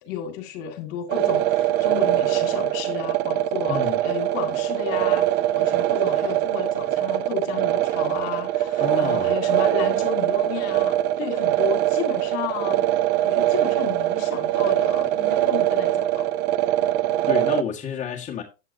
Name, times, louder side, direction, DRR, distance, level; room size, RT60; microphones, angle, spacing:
voice 1, 0.0-5.3 5.5-12.9 13.2-16.3, left 9 dB, 50° left, 2.1 m, -33 dB
sound 1, 1.1-17.6, right 14 dB, 35° right, 0.6 m, -22 dB
voice 2, 3.7-4.0 8.8-9.3 17.3-18.4, left 8 dB, 25° left, 1.7 m, -29 dB
10.0 x 8.1 x 2.7 m
hypercardioid pair, 115°, 32 cm